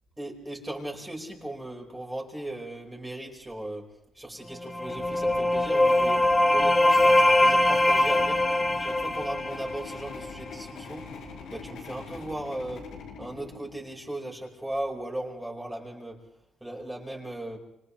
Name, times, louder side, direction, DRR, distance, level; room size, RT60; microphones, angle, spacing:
voice 1, 0.2-11.1 11.5-16.3 16.6-17.6, right 1 dB, 10° right, -1 dB, 5.0 m, -37 dB
sound 1, 4.6-10.3, left 1 dB, 15° left, 1.5 m, -22 dB
sound 2, 4.7-14.1, left 5 dB, 80° left, 6.1 m, -43 dB
30.0 x 27.0 x 3.3 m, 0.84 s
cardioid pair, 90°, 0 cm